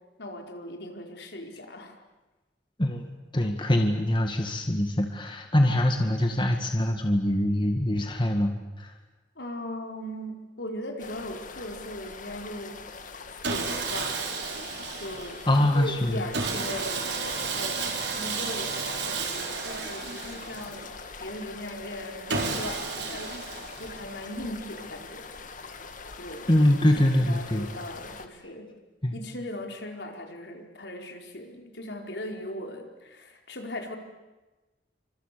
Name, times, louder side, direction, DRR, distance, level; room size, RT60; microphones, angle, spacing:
voice 1, 0.2-2.0 9.4-12.8 13.3-14.2 15.0-17.8 18.1-20.9 21.2-23.4 23.8-25.3 26.2-26.6 27.2-28.7 29.1-34.0, left 1 dB, 70° left, 3 dB, 4.5 m, -38 dB
voice 2, 3.3-8.5 8.8-8.9 15.5-16.2 26.5-27.6 29.0-29.1, left 1 dB, 25° left, 4 dB, 1.9 m, -24 dB
sound 1, 11.0-28.3, left 4 dB, 45° left, 2.0 m, -43 dB
Sawing, 13.4-15.5 16.3-20.9 22.3-24.1, right 4 dB, 75° right, 4.4 m, -32 dB
29.5 x 26.0 x 6.9 m, 1.1 s
head